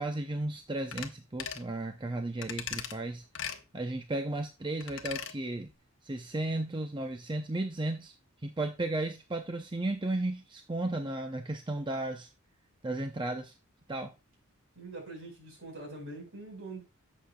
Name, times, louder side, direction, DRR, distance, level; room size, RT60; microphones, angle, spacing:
voice 1, 0.0-3.2 3.7-5.7 6.0-8.1 8.4-12.3 12.8-13.5 13.9-14.1, right 2 dB, 20° right, 0.6 m, -34 dB
sound 1, 0.9-1.1 1.4-1.7 2.4-2.9 3.3-3.6 4.8-5.3 5.7-5.8, left 8 dB, 60° left, 1.1 m, -38 dB
voice 2, 14.7-16.8, right 2 dB, 60° right, 5.0 m, -44 dB
11.5 x 7.6 x 2.3 m
head